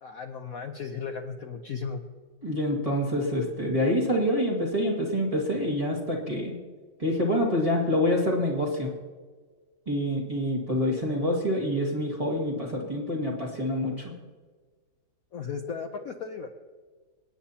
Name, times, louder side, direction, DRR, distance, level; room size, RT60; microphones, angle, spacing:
voice 1, 0.0-2.0 15.3-16.5, left 6 dB, 55° left, 3 dB, 1.1 m, -35 dB
voice 2, 2.4-6.6 7.0-8.9 9.9-14.1, left 1 dB, 20° right, -2 dB, 2.1 m, -26 dB
26.0 x 9.7 x 2.9 m, 1.5 s
omnidirectional pair, 2.1 m